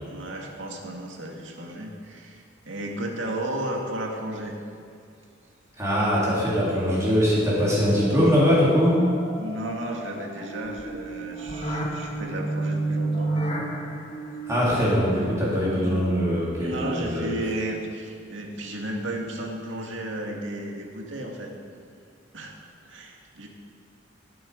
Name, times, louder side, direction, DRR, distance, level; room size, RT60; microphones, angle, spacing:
voice 1, 0.1-4.5 9.4-13.4 15.5-15.9 16.6-21.5 22.3-22.5 22.9-23.5, right 1 dB, 80° right, 0 dB, 2.1 m, -33 dB
voice 2, 5.8-9.0 14.5-17.3, equal, 15° right, -8 dB, 3.5 m, -22 dB
sound 1, 8.0-17.1, right 2 dB, 30° left, 1.7 m, -32 dB
19.5 x 9.1 x 5.2 m, 2.3 s
head